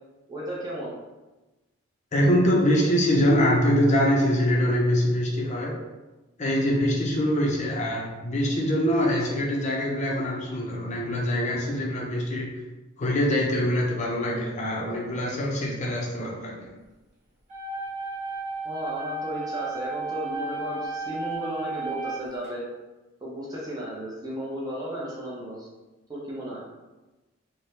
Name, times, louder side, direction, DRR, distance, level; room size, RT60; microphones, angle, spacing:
voice 1, 0.3-0.9 18.6-22.6 23.2-25.7 26.1-26.6, equal, 15° right, -6 dB, 0.5 m, -34 dB
voice 2, 2.1-5.8 6.4-12.5 13.0-16.7, equal, 30° left, -3 dB, 0.5 m, -24 dB
sound 1, 17.5-22.5, right 3 dB, 30° right, 0.9 m, -33 dB
2.6 x 2.1 x 3.2 m, 1.1 s
head